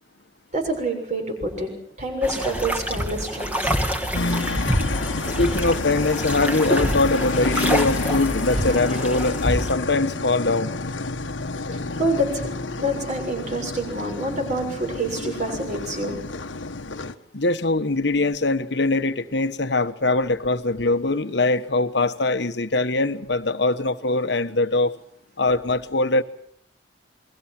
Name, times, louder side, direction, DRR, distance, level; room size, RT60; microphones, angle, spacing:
voice 1, 0.5-1.7 2.0-5.4 8.6-9.0 11.7-12.5 12.8-16.1, right 1 dB, 40° right, 6.7 m, -28 dB
sound 1, 2.2-9.7, equal, 10° right, 2.2 m, -26 dB
sound 2, 4.1-17.1, left 3 dB, 90° left, 1.3 m, -29 dB
voice 2, 5.4-10.7 17.3-24.9 25.4-26.2, left 2 dB, 65° left, 1.2 m, -22 dB
28.5 x 22.0 x 6.1 m
head